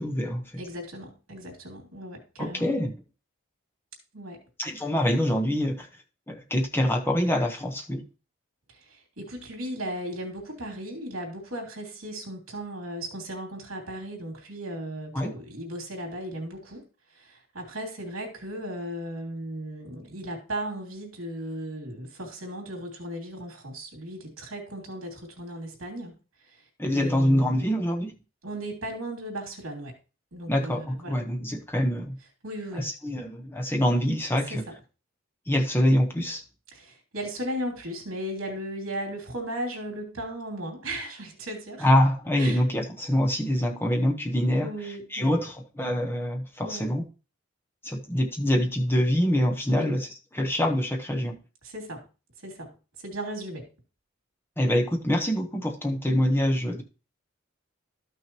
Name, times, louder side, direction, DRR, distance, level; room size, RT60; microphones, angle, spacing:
voice 1, 0.0-0.4 2.4-3.0 4.6-5.9 6.3-8.0 15.1-15.3 26.8-28.1 30.5-32.2 32.7-34.6 35.5-36.4 41.8-47.0 47.8-51.4 54.6-56.8, equal, 10° left, 2 dB, 1.0 m, -25 dB
voice 2, 0.6-2.7 4.1-4.4 8.7-16.8 17.1-26.2 26.5-26.6 26.9-27.7 28.4-29.9 30.3-31.2 32.4-32.9 34.5-34.6 36.7-41.9 42.4-42.6 44.6-45.4 46.6-46.9 49.7-50.0 51.6-52.0 52.4-52.7 53.0-53.6, right 1 dB, 75° right, 1 dB, 2.7 m, -36 dB
12.5 x 6.0 x 3.0 m, 0.32 s
head